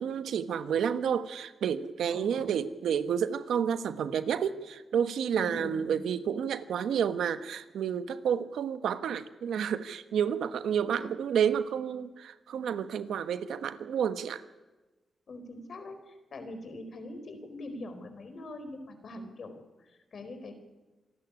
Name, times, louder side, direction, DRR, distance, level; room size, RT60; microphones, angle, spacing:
voice 1, 0.0-14.4, right 8 dB, 90° right, 12 dB, 1.1 m, -30 dB
voice 2, 2.1-2.6 5.3-6.0 11.0-11.1 15.3-20.5, left 2 dB, 60° left, 8 dB, 4.5 m, -43 dB
26.5 x 12.0 x 9.7 m, 1.2 s
cardioid pair, 70°, 0 cm